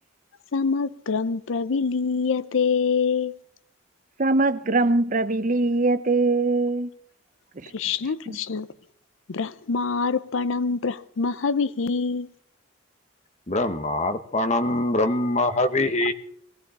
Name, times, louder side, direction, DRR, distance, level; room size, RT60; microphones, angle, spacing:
voice 1, 0.5-3.4 7.7-8.7 9.3-12.3, left 5 dB, 70° left, 0.6 m, -25 dB
voice 2, 4.2-6.9 7.6-7.7, right 2 dB, 40° right, 0.6 m, -22 dB
voice 3, 13.5-16.1, left 2 dB, 35° left, 0.9 m, -23 dB
19.5 x 15.5 x 4.1 m
head